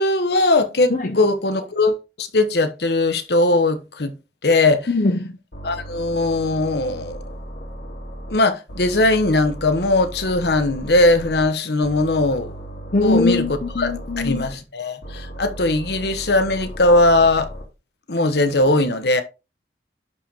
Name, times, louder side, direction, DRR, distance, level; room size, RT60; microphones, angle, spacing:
voice 1, 0.0-4.1 4.4-4.9 5.6-7.2 8.3-12.5 13.0-13.4 13.8-17.5 18.1-19.2, left 2 dB, 70° left, 1.1 m, -19 dB
voice 2, 4.9-5.3 12.9-14.4, left 3 dB, 45° left, 0.6 m, -21 dB
sound 1, 5.5-8.4 8.7-11.5 11.8-14.5 15.0-17.6, right 1 dB, 90° left, 2.7 m, -35 dB
11.0 x 5.0 x 2.9 m
head